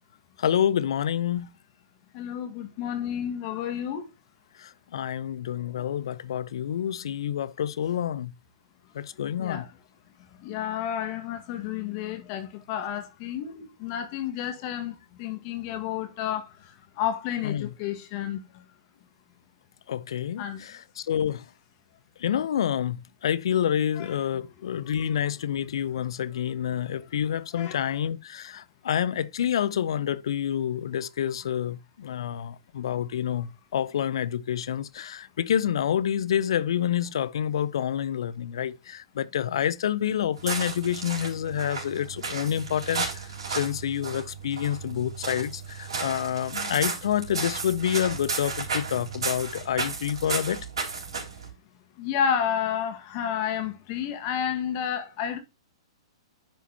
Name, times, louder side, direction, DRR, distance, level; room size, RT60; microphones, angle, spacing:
voice 1, 0.4-1.5 4.6-8.3 8.9-9.7 17.4-17.7 19.9-21.4 22.2-43.1 43.5-50.7, left 9 dB, 65° left, 0.5 m, -28 dB
voice 2, 2.1-4.0 9.4-9.7 10.4-18.6 20.4-20.6 24.0-24.1 24.8-24.9 27.5-28.0 52.0-55.4, left 9 dB, 40° left, 1.6 m, -31 dB
sound 1, 40.3-51.5, right 4 dB, 70° right, 3.7 m, -34 dB
10.0 x 5.8 x 2.8 m
hypercardioid pair, 115°, 3 cm